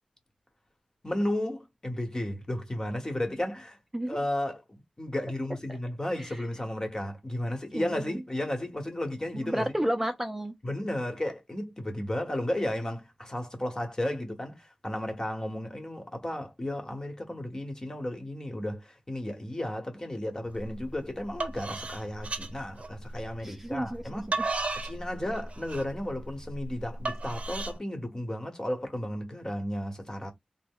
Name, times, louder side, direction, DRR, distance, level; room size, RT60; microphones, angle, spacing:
voice 1, 1.0-3.8 4.0-9.8 10.6-24.4 24.8-30.3, left 1 dB, 30° left, 1.0 m, -33 dB
voice 2, 7.7-8.2 9.3-10.5 23.4-24.2, right 1 dB, 10° right, 0.5 m, -32 dB
sound 1, 20.6-20.8 21.2-23.3 23.9-27.8, right 3 dB, 65° right, 0.6 m, -34 dB
3.2 x 2.0 x 3.6 m
wide cardioid pair, 85°, 2 cm